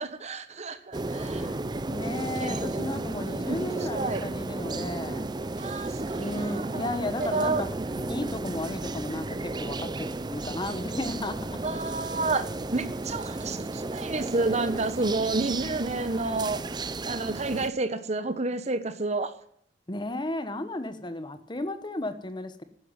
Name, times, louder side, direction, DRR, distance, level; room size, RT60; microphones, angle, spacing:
voice 1, 0.0-1.4 2.4-2.6 3.5-3.6 3.9-4.2 5.6-7.6 11.6-16.6 17.1-19.3, right 3 dB, 40° right, 12 dB, 1.2 m, -30 dB
sound 1, 0.9-17.7, right 2 dB, 25° right, 0.6 m, -33 dB
voice 2, 1.1-1.6 1.9-5.3 6.2-11.6 19.9-22.6, left 1 dB, 25° left, 11 dB, 1.2 m, -34 dB
12.0 x 10.5 x 9.8 m, 0.66 s
head